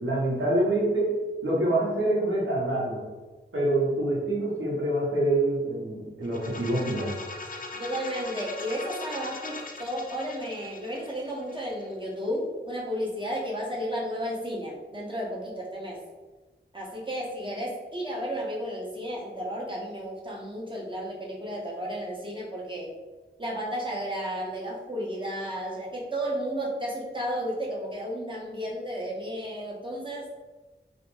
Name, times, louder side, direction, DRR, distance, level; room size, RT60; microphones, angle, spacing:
voice 1, 0.0-3.0 3.5-7.1, right 1 dB, 80° right, -6 dB, 0.8 m, -26 dB
sound 1, 6.2-12.0, left 3 dB, 45° left, 0.4 m, -40 dB
voice 2, 7.7-16.0 16.7-22.9 23.4-30.3, equal, 25° right, -4 dB, 0.6 m, -33 dB
2.4 x 2.1 x 3.0 m, 1.3 s
wide cardioid pair, 60°, 20 cm